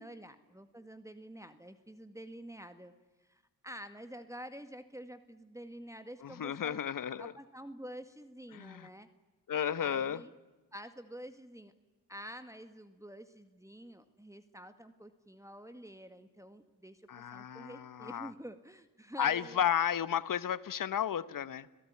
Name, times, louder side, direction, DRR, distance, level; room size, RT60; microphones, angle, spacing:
voice 1, 0.0-2.9 3.2-6.8 7.2-9.1 9.8-10.3 10.7-11.7 12.1-19.7, equal, 10° right, 10 dB, 2.0 m, -48 dB
voice 2, 6.2-7.3 8.5-8.9 9.5-10.2 17.1-18.3 19.2-21.7, left 9 dB, 65° left, 16 dB, 1.2 m, -33 dB
30.0 x 18.0 x 9.8 m, 1.2 s
cardioid pair, 55°, 34 cm